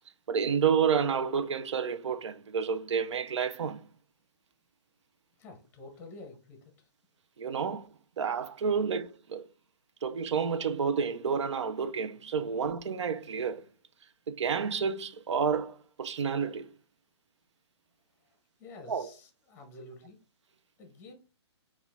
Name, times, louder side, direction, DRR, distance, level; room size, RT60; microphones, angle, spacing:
voice 1, 0.3-3.9 7.4-7.9 8.2-9.4 10.0-13.6 14.3-16.7 18.9-19.1, right 6 dB, 85° right, 0.6 m, -30 dB
voice 2, 5.4-6.7 18.6-20.2 20.8-21.1, left 2 dB, 15° left, 0.7 m, -49 dB
4.3 x 2.4 x 3.4 m
hypercardioid pair, 170°, 15 cm